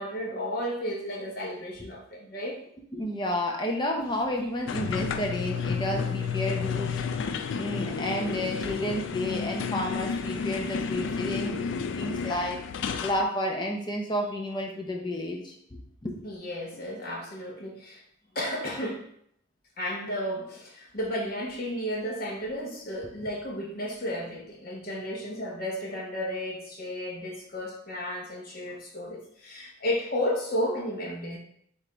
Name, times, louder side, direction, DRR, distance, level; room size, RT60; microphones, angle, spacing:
voice 1, 0.0-2.6 16.2-18.0 18.3-19.1 19.8-31.4, equal, 50° left, 1.0 m, -33 dB
voice 2, 2.9-12.6 13.0-16.2, left 1 dB, 25° left, 0.6 m, -31 dB
sound 1, 4.7-13.2, left 5 dB, 75° left, 0.3 m, -31 dB
3.5 x 3.4 x 3.9 m
head